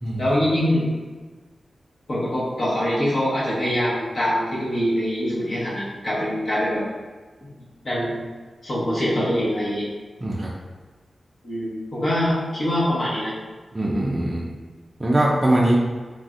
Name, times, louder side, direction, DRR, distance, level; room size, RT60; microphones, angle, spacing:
voice 1, 0.2-0.9 2.1-6.8 7.8-8.3 8.6-9.9 11.4-13.3, equal, 60° left, -7 dB, 1.0 m, -24 dB
voice 2, 10.2-10.5 13.7-14.5 15.0-15.8, right 1 dB, 30° right, -4 dB, 0.4 m, -21 dB
3.1 x 2.5 x 2.4 m, 1.4 s
wide cardioid pair, 80°, 0 cm